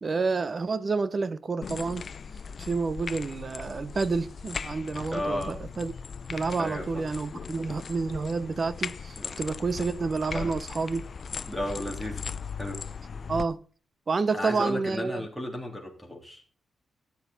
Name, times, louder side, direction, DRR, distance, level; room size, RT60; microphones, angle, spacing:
voice 1, 0.0-2.1 2.6-5.9 6.3-11.1 13.3-13.6 14.1-15.2, right 4 dB, 35° right, 0.7 m, -29 dB
sound 1, 1.6-13.5, left 5 dB, 45° left, 0.5 m, -38 dB
voice 2, 5.1-5.6 6.6-7.0 9.2-9.4 10.3-10.5 11.5-12.2 12.6-12.8 14.3-16.4, left 1 dB, 5° right, 3.2 m, -34 dB
12.5 x 9.4 x 4.0 m
wide cardioid pair, 130°, 0 cm